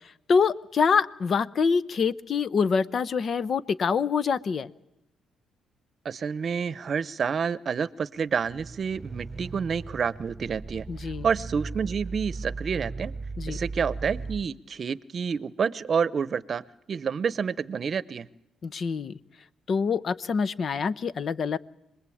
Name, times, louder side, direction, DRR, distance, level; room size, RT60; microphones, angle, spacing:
voice 1, 0.3-4.7 10.9-11.3 13.4-13.6 18.6-19.2 19.7-21.6, left 5 dB, 50° left, 17 dB, 0.8 m, -25 dB
voice 2, 6.0-13.1 13.5-16.6 16.9-18.3, right 6 dB, 50° right, 19 dB, 0.8 m, -29 dB
sound 1, 8.4-14.5, right 4 dB, 20° right, 1.0 m, -37 dB
26.0 x 20.5 x 8.7 m, 0.85 s
cardioid pair, 90°, 0 cm